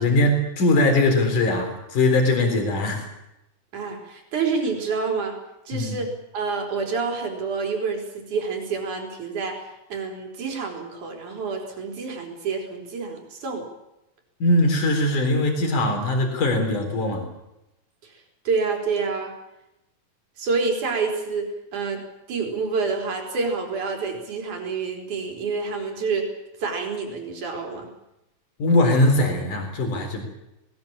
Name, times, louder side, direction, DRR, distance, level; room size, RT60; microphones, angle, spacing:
voice 1, 0.0-3.1 5.7-6.0 14.4-17.3 28.6-30.2, left 2 dB, 90° left, 3 dB, 5.5 m, -21 dB
voice 2, 3.7-5.4 5.7-13.7 18.0-18.1 18.5-19.3 20.4-26.3 26.6-27.9, right 4 dB, 75° right, 2 dB, 5.3 m, -28 dB
20.5 x 20.0 x 8.7 m, 0.90 s
omnidirectional pair, 3.5 m